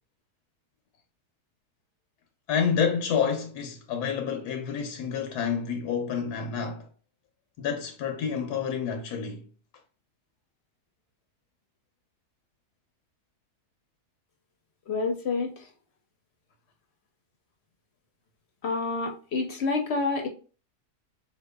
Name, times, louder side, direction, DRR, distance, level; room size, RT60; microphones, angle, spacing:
voice 1, 2.5-6.9 7.6-9.5, left 7 dB, 80° left, 1.1 m, -29 dB
voice 2, 14.9-15.5 18.6-20.3, left 3 dB, 55° left, 0.8 m, -28 dB
4.1 x 2.8 x 2.2 m
omnidirectional pair, 1.7 m